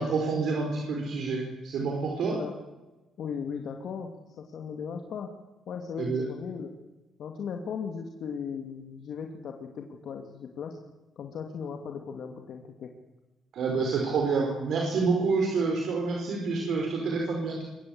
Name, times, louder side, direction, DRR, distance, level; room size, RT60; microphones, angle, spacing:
voice 1, 0.0-2.4 6.0-6.3 13.5-17.6, right 4 dB, 70° right, 0 dB, 5.0 m, -28 dB
voice 2, 3.2-5.3 5.7-6.8 7.2-10.8 11.2-12.9, left 6 dB, 65° left, 3 dB, 2.4 m, -37 dB
23.5 x 18.5 x 8.0 m, 1.1 s
cardioid pair, 90°, 0 cm